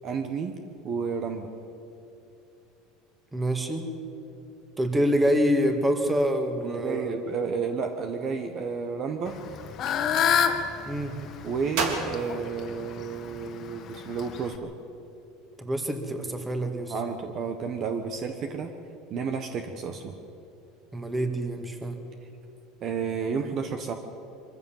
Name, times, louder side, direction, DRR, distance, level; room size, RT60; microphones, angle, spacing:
voice 1, 0.0-0.5 0.8-1.5 6.6-9.4 11.4-14.7 16.9-18.7 19.1-20.1 22.8-23.9, right 5 dB, 40° right, 6 dB, 1.3 m, -31 dB
voice 2, 3.3-3.9 4.8-7.1 10.9-11.1 15.6-16.9 20.9-22.0, equal, 10° right, 6 dB, 2.0 m, -26 dB
Fowl / Bird, 9.3-14.6, left 8 dB, 40° left, 1.6 m, -29 dB
Gunshot gunfire, 9.7-10.3 11.7-13.2, right 4 dB, 65° right, 3.4 m, -32 dB
23.5 x 15.0 x 7.4 m, 2.7 s
supercardioid pair, 130°, 0 cm